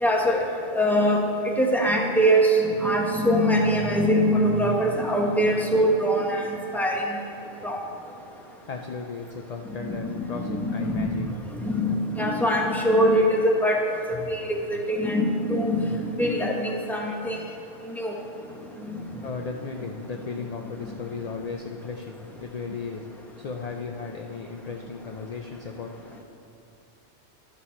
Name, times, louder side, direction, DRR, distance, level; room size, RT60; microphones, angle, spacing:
voice 1, 0.0-7.2 7.6-7.8 9.8-11.1 11.5-13.8 14.1-17.4 17.9-18.1 18.9-19.0, equal, ahead, 0 dB, 0.8 m, -23 dB
voice 2, 8.7-11.3 19.2-23.1 23.4-26.2, left 4 dB, 50° left, 2 dB, 0.4 m, -35 dB
12.0 x 6.8 x 4.2 m, 2.7 s
omnidirectional pair, 1.2 m